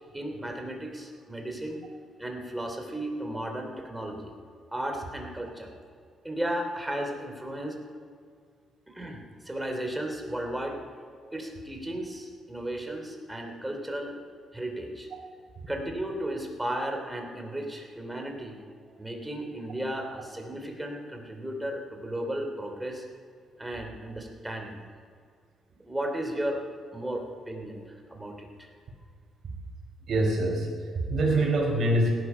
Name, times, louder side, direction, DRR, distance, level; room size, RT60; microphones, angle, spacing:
voice 1, 0.1-1.8 2.2-4.3 4.7-5.7 6.2-7.8 8.9-10.8 11.3-14.2 14.5-15.1 15.7-18.6 18.9-23.0 23.6-24.8 25.8-26.6 26.9-28.7, right 1 dB, 10° right, 3 dB, 3.0 m, -34 dB
voice 2, 30.1-32.1, right 1 dB, 55° right, -2 dB, 4.6 m, -26 dB
17.0 x 11.5 x 5.6 m, 2.1 s
cardioid pair, 90°, 0 cm